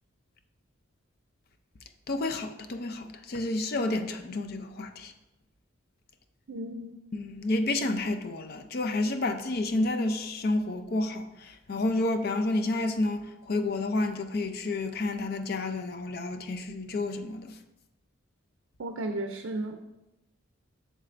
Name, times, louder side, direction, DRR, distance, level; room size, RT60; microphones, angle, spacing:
voice 1, 2.1-5.1 7.1-17.5, left 2 dB, 50° left, 0.5 m, -30 dB
voice 2, 6.5-6.9 18.8-19.8, right 1 dB, 65° right, 0.5 m, -34 dB
7.5 x 6.6 x 2.5 m
head